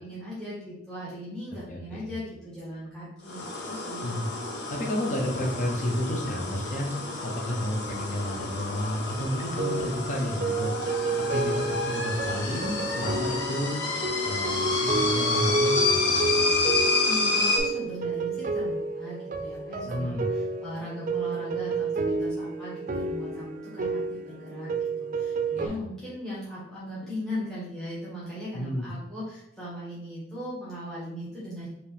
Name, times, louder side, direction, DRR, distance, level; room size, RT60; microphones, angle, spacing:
voice 1, 0.0-4.1 17.0-24.7 25.0-31.7, equal, 5° left, -10 dB, 1.7 m, -38 dB
voice 2, 1.7-2.1 4.0-4.3 4.7-6.9 7.2-10.7 11.1-13.8 14.2-14.6 14.9-16.7 19.8-20.3 25.5-25.8 28.5-28.9, equal, 45° left, 0 dB, 0.9 m, -31 dB
sound 1, 3.2-17.6, left 3 dB, 80° left, 1.0 m, -29 dB
sound 2, 9.6-25.7, right 2 dB, 45° right, 0.4 m, -30 dB
5.2 x 2.9 x 3.4 m, 0.76 s
head